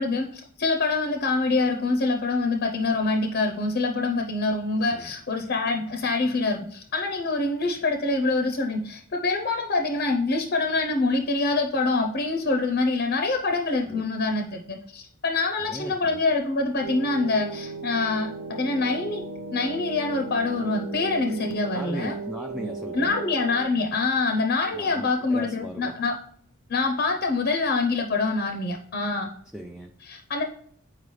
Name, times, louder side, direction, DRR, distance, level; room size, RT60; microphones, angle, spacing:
voice 1, 0.0-19.2 19.5-22.1 22.9-26.2 26.7-29.3 30.1-30.4, left 3 dB, 50° left, 4 dB, 0.6 m, -25 dB
voice 2, 4.8-5.1 13.9-14.1 15.7-16.2 21.7-23.2 24.7-26.0 29.5-29.9, equal, 5° right, 3 dB, 0.3 m, -38 dB
sound 1, 16.8-23.6, right 3 dB, 85° right, 1.1 m, -36 dB
8.4 x 4.8 x 3.2 m, 0.62 s
head